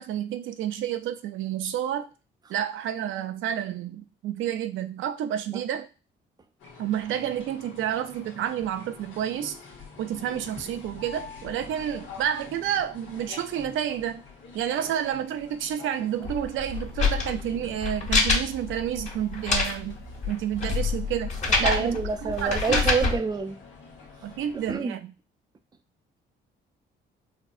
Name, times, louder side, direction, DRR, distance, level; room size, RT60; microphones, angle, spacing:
voice 1, 0.0-2.1 2.5-5.9 6.8-9.6 10.0-14.2 14.5-20.0 20.3-21.3 21.6-22.8 24.2-25.1, right 10 dB, 80° right, 0.5 m, -30 dB
sound 1, 6.6-24.8, left 4 dB, 75° left, 1.3 m, -46 dB
sound 2, 16.2-23.2, left 4 dB, 35° left, 1.5 m, -26 dB
voice 2, 21.5-23.6 24.7-25.0, right 5 dB, 20° right, 0.4 m, -27 dB
4.2 x 2.7 x 2.4 m
cardioid pair, 90°, 20 cm